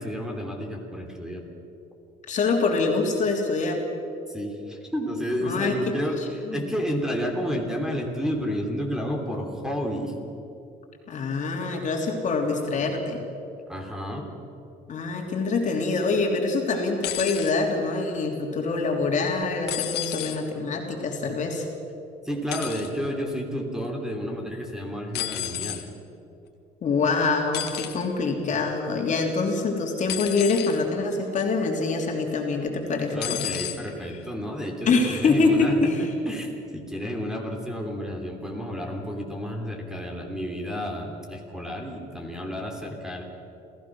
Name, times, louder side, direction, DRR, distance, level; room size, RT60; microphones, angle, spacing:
voice 1, 0.0-1.4 4.3-6.2 6.4-10.1 12.8-13.0 13.7-14.3 22.2-25.8 33.1-43.2, equal, 5° right, 2 dB, 3.0 m, -31 dB
voice 2, 2.3-3.8 5.4-6.6 11.1-13.2 14.9-21.7 26.8-33.4 34.9-36.0, left 3 dB, 45° left, 1 dB, 3.2 m, -25 dB
sound 1, 17.0-17.5 19.7-20.4 22.5-22.9 25.1-25.8 27.5-28.0 30.1-30.8 31.4-31.7 33.2-33.8 34.8-34.9, left 12 dB, 75° left, 1.9 m, -31 dB
27.5 x 15.5 x 6.2 m, 2.8 s
cardioid pair, 110°, 17 cm